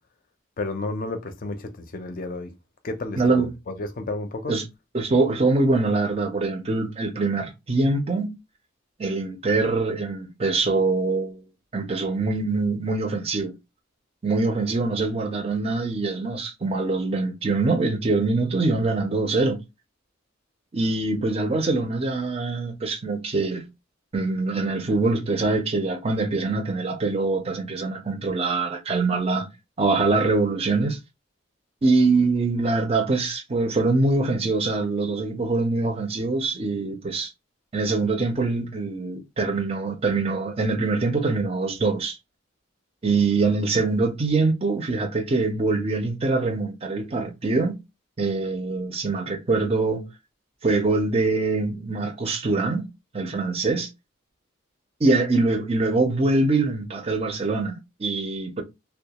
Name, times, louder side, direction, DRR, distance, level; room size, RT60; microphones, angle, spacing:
voice 1, 0.6-2.5 2.8-4.5, left 2 dB, 45° left, 0.5 m, -32 dB
voice 2, 3.2-3.5 4.5-4.7 4.9-8.3 9.0-11.4 11.7-13.5 14.2-19.6 20.7-23.7 24.1-29.5 29.8-31.0 31.8-37.3 37.7-42.2 43.0-47.8 48.2-50.1 50.6-52.9 53.1-53.9 55.0-58.6, right 3 dB, 30° right, 0.5 m, -24 dB
2.2 x 2.2 x 2.8 m
head